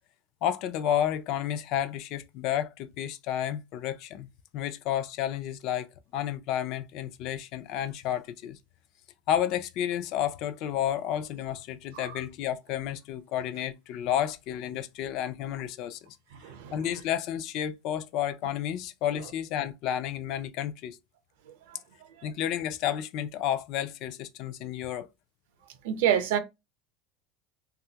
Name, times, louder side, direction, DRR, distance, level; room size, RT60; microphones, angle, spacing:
voice 1, 0.4-8.6 9.3-16.2 16.7-21.0 22.2-25.1, left 10 dB, 45° left, 0.4 m, -31 dB
voice 2, 16.4-16.7 21.7-21.8 22.2-22.3 25.8-26.4, right 9 dB, 75° right, 0.7 m, -27 dB
3.3 x 2.3 x 2.8 m
supercardioid pair, 170°, 0 cm